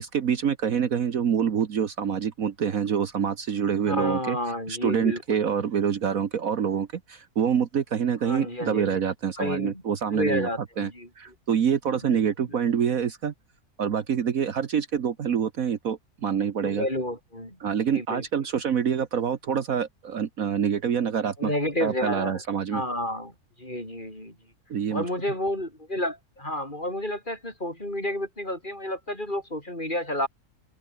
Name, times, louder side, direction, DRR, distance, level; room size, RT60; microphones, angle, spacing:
voice 1, 0.0-4.4 4.7-10.5 10.8-10.9 11.2-13.3 13.8-16.9 17.6-21.5 21.8-22.8 24.7-25.1, right 7 dB, 60° right, 1.5 m, -26 dB
voice 2, 3.9-5.2 8.2-9.0 9.4-9.8 10.1-11.1 12.1-12.2 16.6-17.6 17.9-18.2 21.4-22.4 22.7-23.3 23.6-24.3 24.9-30.3, left 1 dB, 30° left, 8.4 m, -30 dB
open air
omnidirectional pair, 1.7 m